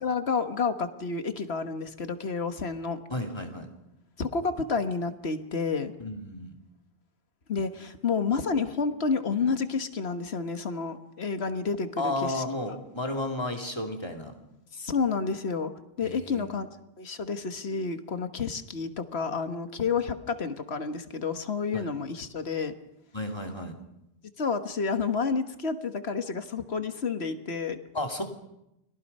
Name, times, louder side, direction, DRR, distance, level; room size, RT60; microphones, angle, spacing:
voice 1, 0.0-3.0 4.2-5.9 7.5-12.4 14.7-15.7 16.0-16.7 17.0-22.7 24.4-27.8, left 5 dB, 70° left, 9 dB, 1.6 m, -30 dB
voice 2, 3.1-3.7 6.0-6.5 12.0-14.3 16.0-16.5 21.7-21.9 23.1-23.8 27.9-28.2, left 1 dB, 25° left, 3 dB, 2.6 m, -32 dB
30.0 x 22.0 x 5.5 m, 0.87 s
omnidirectional pair, 1.1 m